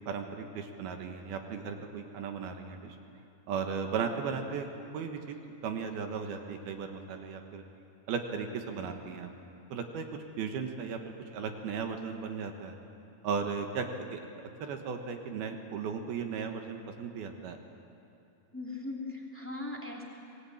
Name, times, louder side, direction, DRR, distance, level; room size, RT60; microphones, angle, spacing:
voice 1, 0.0-3.0 3.5-4.7 4.9-5.4 5.6-7.6 8.1-9.3 9.7-12.8 13.2-14.2 14.6-17.6, right 6 dB, 70° right, 5 dB, 3.0 m, -36 dB
voice 2, 18.5-20.0, left 2 dB, 5° left, -1 dB, 1.4 m, -39 dB
25.0 x 19.0 x 8.7 m, 2.7 s
omnidirectional pair, 4.9 m